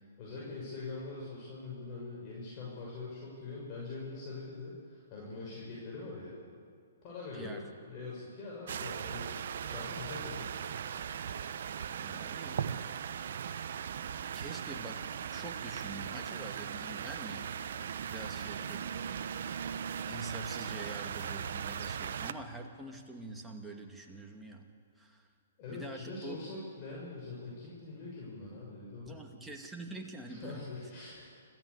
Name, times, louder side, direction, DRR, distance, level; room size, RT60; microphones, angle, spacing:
voice 1, 0.2-6.3 7.0-7.6 7.9-9.3 9.6-10.7 25.6-29.2 30.3-31.3, left 3 dB, 35° left, -4 dB, 6.5 m, -43 dB
voice 2, 7.3-7.7 11.9-12.6 14.3-15.0 15.3-17.5 18.1-18.9 20.0-24.7 25.0-25.3 25.7-26.4 29.0-30.6, right 2 dB, 5° right, 1 dB, 2.5 m, -45 dB
sound 1, 8.7-22.3, right 8 dB, 60° right, 1.0 m, -38 dB
25.5 x 15.0 x 8.4 m, 2.1 s
hypercardioid pair, 130°, 0 cm